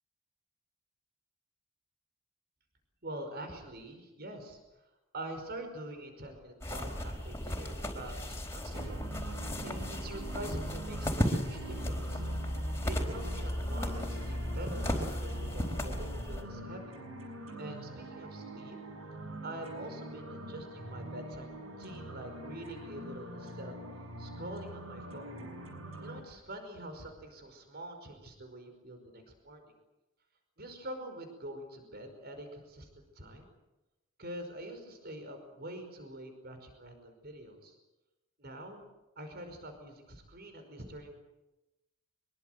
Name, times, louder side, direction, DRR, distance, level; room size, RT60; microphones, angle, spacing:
voice 1, 3.0-4.6 5.1-9.1 9.6-12.2 12.8-17.0 17.6-18.8 19.4-23.7 24.2-25.3 26.0-29.7 30.6-33.5 34.2-37.8 38.4-38.8 39.2-41.2, right 1 dB, 50° right, 6 dB, 5.2 m, -45 dB
sound 1, 6.6-16.4, equal, 15° left, 4.2 m, -35 dB
sound 2, 8.7-26.2, right 1 dB, 85° right, 6.0 m, -45 dB
24.5 x 23.0 x 8.1 m, 1.0 s
head